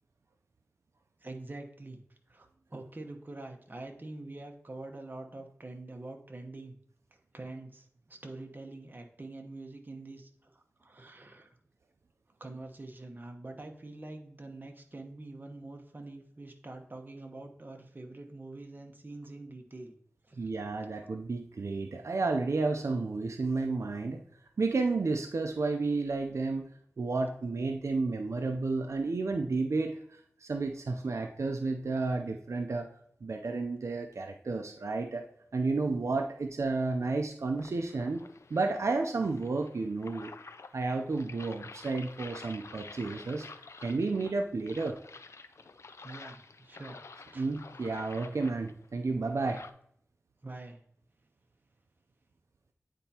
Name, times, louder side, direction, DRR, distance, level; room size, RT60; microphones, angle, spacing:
voice 1, 1.2-2.0 2.3-6.8 7.1-11.6 12.4-20.0 20.2-20.5 20.8-20.9 46.0-47.0 47.3-47.5 50.4-50.8, right 2 dB, 40° right, 4 dB, 1.0 m, -45 dB
voice 2, 20.4-24.2 24.6-26.7 27.0-32.9 33.2-35.3 35.5-38.2 38.5-40.3 40.7-43.5 43.8-45.0 47.4-49.6, right 3 dB, 85° right, 5 dB, 0.5 m, -31 dB
sound 1, 37.6-49.7, left 4 dB, 75° left, 0.4 m, -50 dB
9.1 x 4.4 x 2.8 m, 0.67 s
wide cardioid pair, 60°, 5 cm